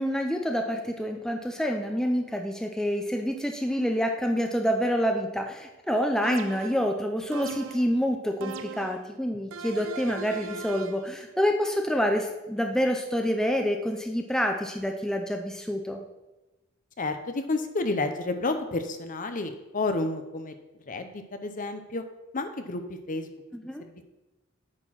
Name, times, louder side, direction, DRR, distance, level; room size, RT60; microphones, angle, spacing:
voice 1, 0.0-16.0 23.6-23.8, equal, 5° left, 3 dB, 0.5 m, -27 dB
sound 1, 6.2-6.9 7.3-7.9 8.4-9.0 9.5-11.1, right 5 dB, 75° right, 0.4 m, -39 dB
voice 2, 17.0-20.5 20.9-22.0 22.3-22.8 23.1-23.3 23.8-24.0, left 2 dB, 40° left, 8 dB, 0.7 m, -30 dB
9.0 x 4.3 x 5.9 m, 1.0 s
head